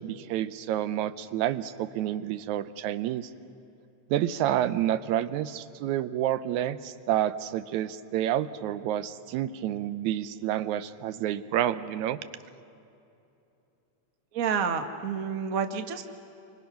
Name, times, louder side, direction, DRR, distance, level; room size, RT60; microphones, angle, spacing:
voice 1, 0.0-3.3 4.1-12.2, right 11 dB, 80° right, 12 dB, 2.1 m, -29 dB
voice 2, 14.3-16.0, right 6 dB, 55° right, 6 dB, 0.9 m, -29 dB
29.0 x 24.5 x 5.8 m, 2.8 s
omnidirectional pair, 3.3 m